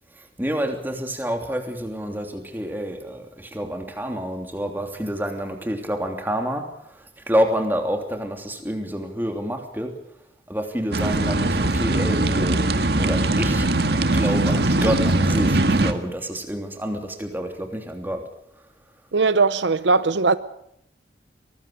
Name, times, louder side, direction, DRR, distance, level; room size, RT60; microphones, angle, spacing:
voice 1, 0.1-9.9 10.5-12.6 13.0-13.7 14.1-18.2, equal, 10° right, 3.1 m, -28 dB
sound 1, 10.9-15.9, right 2 dB, 60° right, 1.8 m, -21 dB
voice 2, 19.1-20.4, right 4 dB, 80° right, 0.8 m, -19 dB
24.0 x 20.0 x 6.6 m
head